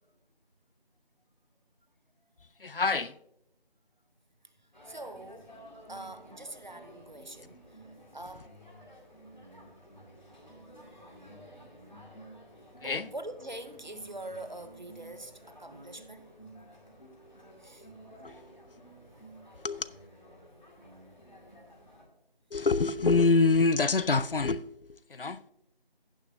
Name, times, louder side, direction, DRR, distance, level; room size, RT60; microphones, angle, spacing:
voice 1, 2.6-3.2 12.8-13.1 18.2-18.4 19.6-19.9 22.5-25.4, left 4 dB, 65° left, 0.5 m, -26 dB
sound 1, 4.7-22.0, right 1 dB, 45° left, 2.3 m, -52 dB
voice 2, 4.8-5.5 5.9-7.8 8.1-8.5 12.8-16.3 17.6-17.9 19.3-19.5, right 1 dB, 50° right, 0.7 m, -44 dB
16.5 x 6.2 x 2.7 m
figure-of-eight pair, 175°, 30 cm